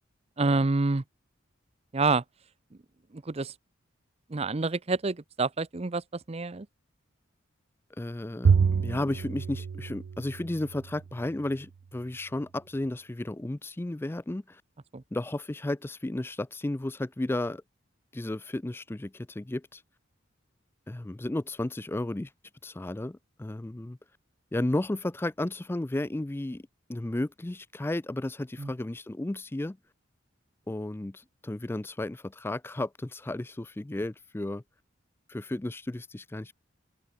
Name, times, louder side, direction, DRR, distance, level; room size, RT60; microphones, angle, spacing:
voice 1, 0.4-1.0 1.9-2.2 3.1-3.5 4.3-6.7 14.9-15.0 28.6-28.7, right 3 dB, 30° right, 0.6 m, -28 dB
voice 2, 8.0-14.6 15.1-17.6 18.1-19.8 20.9-22.3 22.6-24.0 24.5-26.6 26.9-29.8 30.7-34.6 35.3-36.5, left 1 dB, 10° left, 0.4 m, -33 dB
Bowed string instrument, 8.4-11.0, right 6 dB, 80° right, 0.4 m, -27 dB
head